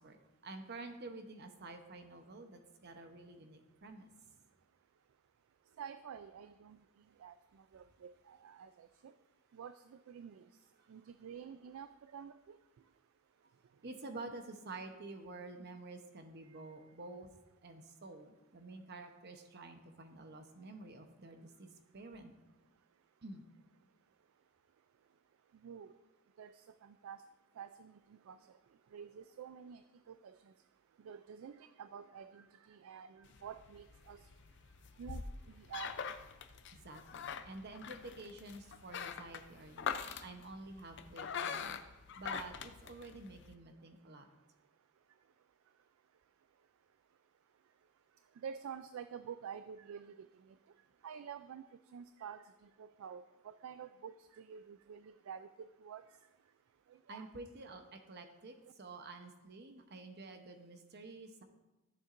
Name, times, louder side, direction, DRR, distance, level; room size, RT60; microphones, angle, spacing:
voice 1, 0.0-4.1 13.8-17.3 17.6-21.7 21.9-22.3 23.2-23.4 36.4-41.7 42.2-44.3 57.1-61.4, right 2 dB, 50° right, 6 dB, 0.8 m, -50 dB
voice 2, 5.8-6.8 7.2-9.1 9.5-10.5 10.9-12.6 16.4-16.6 25.6-26.0 26.4-27.2 27.6-28.6 28.9-30.5 31.0-34.3 35.0-35.9 48.4-50.6 51.0-51.7 51.9-56.2 56.9-57.3, right 7 dB, 70° right, 12 dB, 0.3 m, -49 dB
sound 1, 33.3-43.5, left 6 dB, 55° left, 0.5 m, -44 dB
14.0 x 7.1 x 2.5 m, 1.0 s
head